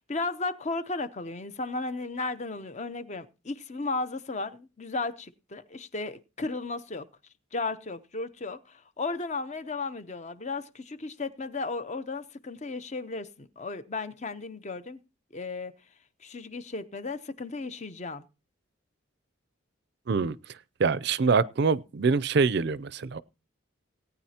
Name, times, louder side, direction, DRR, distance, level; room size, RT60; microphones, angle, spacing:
voice 1, 0.0-7.1 7.5-15.0 15.3-15.7 16.2-18.2, left 3 dB, 35° left, 0.7 m, -35 dB
voice 2, 20.8-23.2, right 4 dB, 55° right, 0.5 m, -24 dB
18.5 x 9.3 x 2.8 m
head